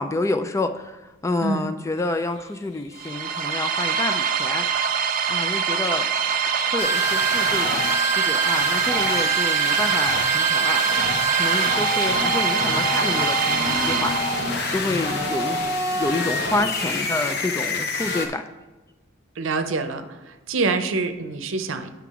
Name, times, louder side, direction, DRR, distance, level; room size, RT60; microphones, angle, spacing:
voice 1, 0.0-4.7 5.3-6.1 6.7-7.9 8.2-10.8 11.3-14.2 14.7-18.5, left 2 dB, 15° left, 9 dB, 0.3 m, -28 dB
sound 1, 2.0-12.2, left 1 dB, 80° left, 2.3 m, -39 dB
sound 2, 3.0-14.8, right 7 dB, 45° right, 0.5 m, -24 dB
sound 3, 6.8-18.3, equal, 55° left, 0.9 m, -25 dB
voice 2, 19.4-21.9, right 3 dB, 90° right, 8 dB, 0.7 m, -26 dB
8.4 x 5.8 x 3.6 m, 1.2 s
head